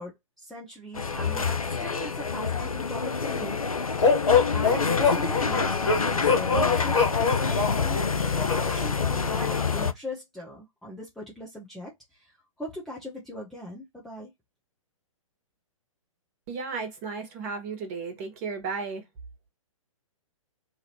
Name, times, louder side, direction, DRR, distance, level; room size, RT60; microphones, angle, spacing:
voice 1, 0.0-8.0 8.3-14.3, equal, ahead, 0.5 m, -40 dB
sound 1, 0.9-9.9, left 5 dB, 85° left, 0.5 m, -27 dB
sound 2, 4.0-8.8, left 5 dB, 60° left, 1.6 m, -24 dB
voice 2, 16.5-19.0, right 4 dB, 30° right, 1.2 m, -34 dB
2.9 x 2.5 x 2.8 m
figure-of-eight pair, 120°, 18 cm